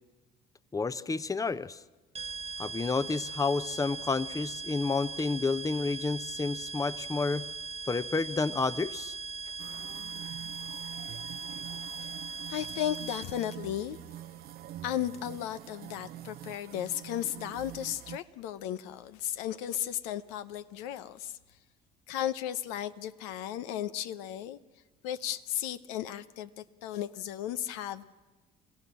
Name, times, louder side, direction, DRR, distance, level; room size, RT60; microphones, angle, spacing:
voice 1, 0.7-1.8 2.6-7.4 7.9-9.1, left 4 dB, 20° left, 16 dB, 0.8 m, -30 dB
sound 1, 2.1-13.6, right 4 dB, 35° right, 1.5 m, -40 dB
sound 2, 9.6-18.2, right 13 dB, 60° right, 0.6 m, -46 dB
voice 2, 12.0-14.0 14.8-21.4 22.1-24.6 25.0-28.1, left 11 dB, 80° left, 12 dB, 0.8 m, -35 dB
28.5 x 15.0 x 7.5 m, 1.2 s
hypercardioid pair, 60°, 18 cm